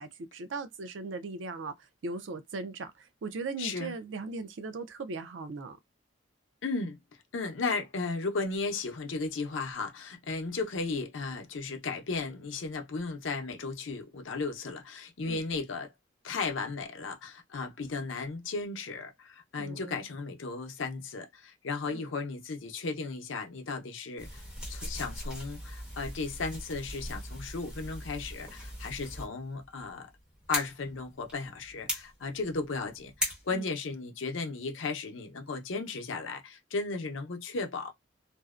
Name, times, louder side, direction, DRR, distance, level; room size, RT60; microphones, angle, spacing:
voice 1, 0.0-1.7 2.0-5.8 15.2-15.4 19.6-20.1 21.8-22.1 33.5-33.7, right 3 dB, 80° right, 0.5 m, -38 dB
voice 2, 3.6-3.9 6.6-7.0 7.3-15.9 16.2-24.4 24.7-30.1 30.5-37.9, left 4 dB, 85° left, 0.6 m, -35 dB
sound 1, 24.2-33.5, equal, 5° right, 1.0 m, -39 dB
2.6 x 2.0 x 2.4 m
head